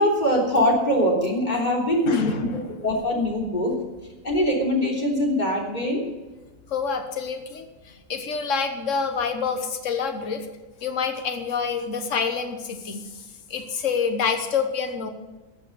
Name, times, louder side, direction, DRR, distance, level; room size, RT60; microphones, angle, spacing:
voice 1, 0.0-2.5 2.8-3.7 4.2-6.0, left 1 dB, 30° left, -1 dB, 3.6 m, -22 dB
voice 2, 2.1-2.6 6.7-10.5 10.8-13.1 13.5-15.1, left 5 dB, 65° left, 6 dB, 1.6 m, -27 dB
14.5 x 7.6 x 7.8 m, 1.2 s
omnidirectional pair, 1.4 m